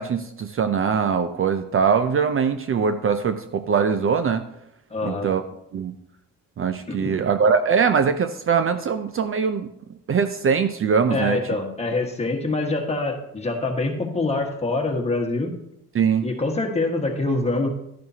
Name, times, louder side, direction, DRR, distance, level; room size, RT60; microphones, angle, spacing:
voice 1, 0.0-4.4 5.0-5.4 5.7-5.9 6.6-9.7 10.1-11.4 15.9-16.2, right 6 dB, 40° right, 9 dB, 0.5 m, -22 dB
voice 2, 4.9-5.3 6.9-7.1 11.1-15.5 16.2-17.7, left 2 dB, 20° left, 2 dB, 1.6 m, -25 dB
11.5 x 10.5 x 2.8 m, 0.80 s
cardioid pair, 115°, 33 cm